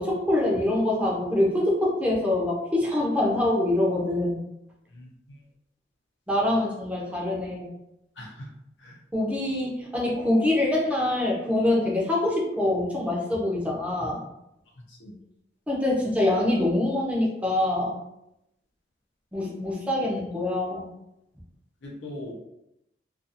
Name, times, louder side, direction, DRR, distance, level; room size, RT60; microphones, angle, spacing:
voice 1, 0.0-4.4 6.3-7.7 9.1-14.2 15.7-18.0 19.3-20.9, left 1 dB, 5° right, -3 dB, 0.6 m, -25 dB
voice 2, 4.9-5.4 8.2-8.5 8.8-9.0 14.9-15.1 21.8-22.3, left 1 dB, 85° left, -1 dB, 0.7 m, -41 dB
2.5 x 2.4 x 2.7 m, 0.84 s
head